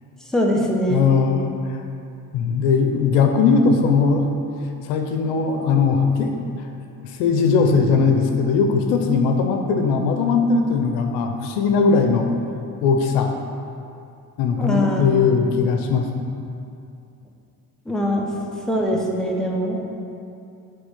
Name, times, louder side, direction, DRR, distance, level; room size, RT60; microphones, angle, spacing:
voice 1, 0.3-1.2 14.6-15.2 17.8-18.3 18.7-19.9, equal, ahead, -2 dB, 1.2 m, -22 dB
voice 2, 0.9-1.8 2.3-4.3 4.8-6.3 6.6-6.7 7.0-12.3 12.8-13.4 14.4-16.2, left 5 dB, 85° left, 4 dB, 0.7 m, -19 dB
7.7 x 3.4 x 5.8 m, 2.5 s
supercardioid pair, 65°, 41 cm